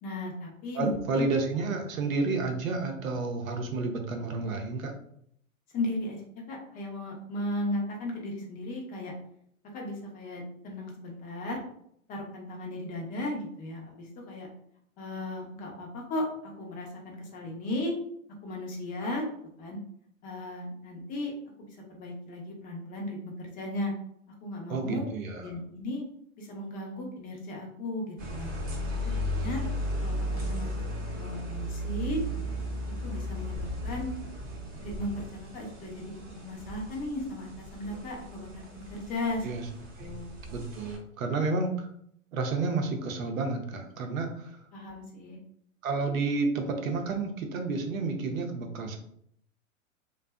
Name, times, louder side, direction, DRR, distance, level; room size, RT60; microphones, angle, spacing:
voice 1, 0.0-1.3 5.7-9.1 9.7-11.6 12.1-14.5 15.0-17.9 18.4-19.2 19.6-19.8 20.2-21.3 21.6-23.9 24.4-25.0 25.4-26.0 26.4-28.5 28.9-29.1 29.4-29.6 30.0-30.7 31.1-32.2 33.0-34.1 34.8-39.5 40.0-40.3 44.7-45.4, left 1 dB, 20° left, 0 dB, 0.5 m, -36 dB
voice 2, 0.7-4.9 24.7-25.4 39.4-39.7 40.0-40.1 40.5-41.9 42.3-44.5 45.8-49.0, right 3 dB, 75° right, 4 dB, 0.7 m, -30 dB
sound 1, 28.2-41.0, equal, 20° right, 0.7 m, -35 dB
2.5 x 2.2 x 2.2 m, 0.68 s
hypercardioid pair, 110°, 41 cm